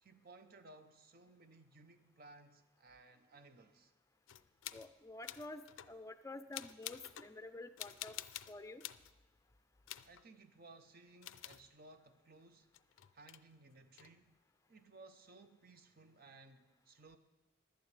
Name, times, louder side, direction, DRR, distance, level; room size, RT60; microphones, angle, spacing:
voice 1, 0.0-3.9 10.0-12.7 13.1-14.4 14.7-17.2, right 3 dB, 50° right, 0.7 m, -60 dB
sound 1, 4.3-4.9 5.2-6.0 6.5-7.3 7.8-9.1 9.9-10.2 11.2-11.7 12.7-13.4 14.0-14.1, left 13 dB, 85° left, 0.4 m, -49 dB
voice 2, 4.7-5.6 5.9-8.2 8.5-8.8, left 2 dB, 15° left, 0.5 m, -49 dB
16.0 x 11.5 x 3.3 m
head